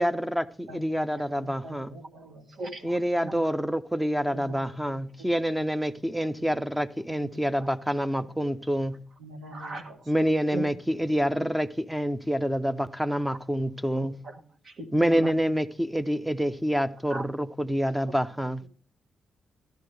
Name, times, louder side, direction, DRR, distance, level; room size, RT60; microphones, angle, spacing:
voice 1, 0.0-1.9 2.8-9.0 10.1-14.2 14.9-18.6, equal, 5° right, 0.6 m, -27 dB
voice 2, 0.7-2.9 3.2-3.3 4.2-7.6 8.2-8.3 9.2-10.3, right 1 dB, 90° right, 2.4 m, -48 dB
voice 3, 2.6-3.0 3.2-3.4 7.6-7.7 9.5-9.8 10.5-10.6 14.0-15.3 17.1-17.3 18.0-18.1, right 2 dB, 55° right, 1.6 m, -38 dB
13.0 x 11.5 x 3.3 m
cardioid pair, 90°, 0 cm